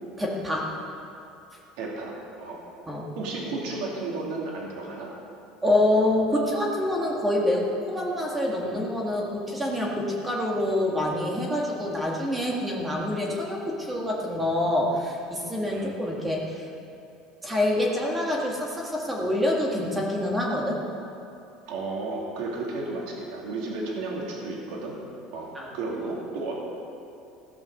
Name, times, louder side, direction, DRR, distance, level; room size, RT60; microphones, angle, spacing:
voice 1, 0.2-0.7 2.9-3.1 5.6-16.7 17.4-20.8 25.5-25.7, left 1 dB, 10° right, -2 dB, 1.7 m, -26 dB
voice 2, 1.8-2.6 3.2-5.1 15.7-16.0 21.7-25.0 25.3-26.5, right 3 dB, 70° right, -2 dB, 2.7 m, -33 dB
17.0 x 6.4 x 6.5 m, 2.7 s
cardioid pair, 170°, 0 cm